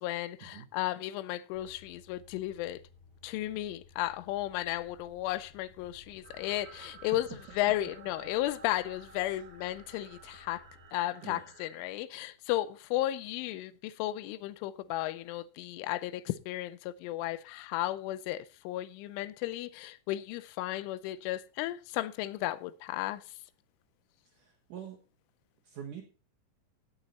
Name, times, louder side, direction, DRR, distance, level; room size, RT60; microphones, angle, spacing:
voice 1, 0.0-2.8 3.2-7.3 7.6-10.6 10.9-23.3, left 15 dB, 80° left, 3.0 m, -34 dB
sound 1, 1.5-10.9, left 3 dB, 30° right, 5.7 m, -59 dB
sound 2, 6.2-11.8, right 6 dB, 70° right, 3.7 m, -54 dB
voice 2, 24.3-25.0 25.6-26.0, right 8 dB, 85° right, 1.8 m, -45 dB
17.0 x 6.6 x 4.2 m
omnidirectional pair, 5.8 m